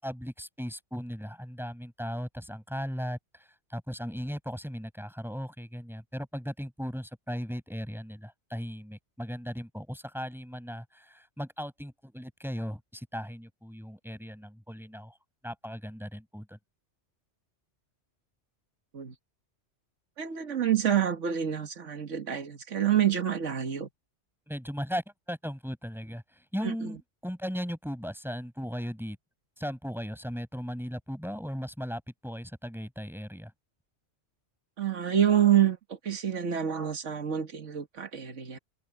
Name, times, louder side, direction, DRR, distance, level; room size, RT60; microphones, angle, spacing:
voice 1, 0.0-15.1 15.4-16.6 24.5-29.2 29.6-33.5, equal, ahead, 6.1 m, -37 dB
voice 2, 20.2-23.9 26.6-26.7 34.8-38.6, right 10 dB, 85° right, 1.8 m, -27 dB
omnidirectional pair, 1.2 m